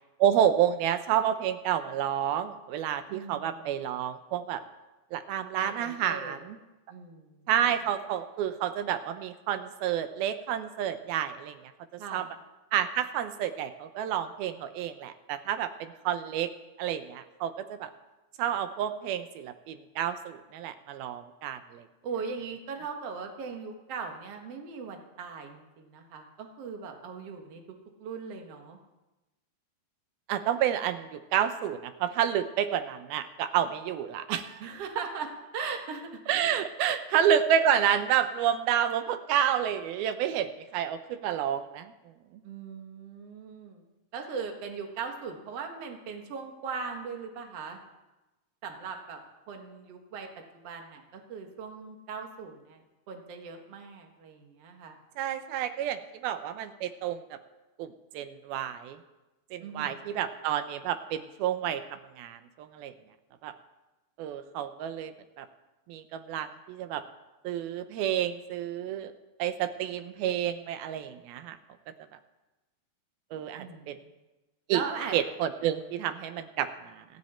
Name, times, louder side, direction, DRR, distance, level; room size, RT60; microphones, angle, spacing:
voice 1, 0.2-4.6 5.1-6.6 7.5-11.6 11.9-12.3 12.7-16.5 16.8-17.9 18.4-21.9 30.3-34.6 36.3-41.9 55.2-57.4 57.8-59.0 59.5-62.9 63.4-63.5 64.2-65.5 65.9-67.0 67.4-69.1 69.4-71.6 73.3-74.0 74.7-74.8 75.1-77.0, right 10 dB, 75° right, 10 dB, 2.5 m, -29 dB
voice 2, 3.1-3.8 5.5-6.4 6.9-7.5 12.0-12.3 22.0-27.6 28.0-28.8 34.6-36.2 36.8-37.0 42.4-43.8 44.1-47.8 48.6-49.2 49.5-50.3 50.6-52.8 53.1-55.0 59.6-60.2 73.6-74.1 74.7-75.1, right 5 dB, 50° right, 3 dB, 2.1 m, -39 dB
28.0 x 9.5 x 4.4 m, 1.1 s
omnidirectional pair, 4.7 m